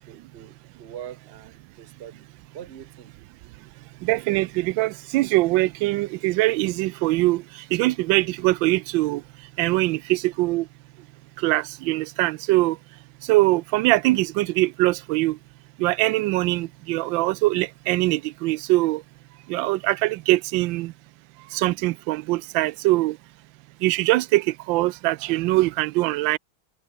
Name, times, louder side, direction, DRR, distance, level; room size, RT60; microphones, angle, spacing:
voice 1, 0.0-2.3 2.5-3.1, right 10 dB, 45° right, 0.9 m, -42 dB
voice 2, 4.0-7.4 7.7-9.2 9.6-10.6 11.4-12.8 13.3-15.4 15.8-19.0 19.5-20.9 21.5-23.2 23.8-26.4, right 19 dB, 75° right, 1.2 m, -22 dB
omnidirectional pair, 2.2 m